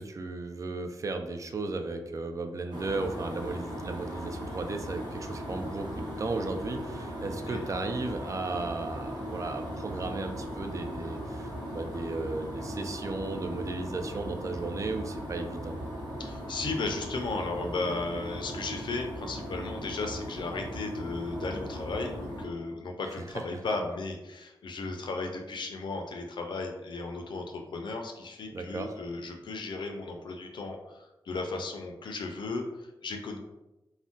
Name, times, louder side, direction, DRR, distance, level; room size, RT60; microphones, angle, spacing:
voice 1, 0.0-15.8 23.3-23.4 28.5-29.0, right 3 dB, 40° right, 6 dB, 0.3 m, -35 dB
sound 1, 2.7-22.5, equal, 55° right, 1.1 m, -38 dB
voice 2, 16.2-33.4, left 3 dB, 65° left, 3 dB, 0.4 m, -35 dB
2.5 x 2.1 x 3.6 m, 0.97 s
wide cardioid pair, 110°, 8 cm